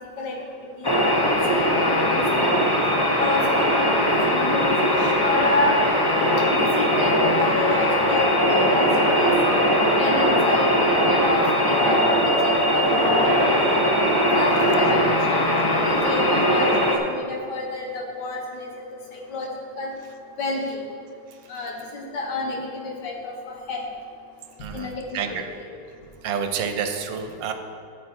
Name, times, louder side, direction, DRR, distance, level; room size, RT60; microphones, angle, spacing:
voice 1, 0.8-2.6 3.2-3.8 4.3-4.7 5.0-5.7 6.5-9.3 10.0-13.8 14.3-15.0 15.3-18.7 19.3-19.5 19.8-19.9 20.4-20.8 21.5-22.6 22.8-23.8 24.7-25.7, left 2 dB, 65° left, -1 dB, 2.0 m, -29 dB
sound 1, 0.8-17.0, equal, 25° left, 0.5 m, -20 dB
voice 2, 24.6-25.4 26.2-27.5, right 6 dB, 80° right, 7 dB, 1.5 m, -29 dB
9.4 x 7.8 x 4.5 m, 2.5 s
omnidirectional pair, 2.0 m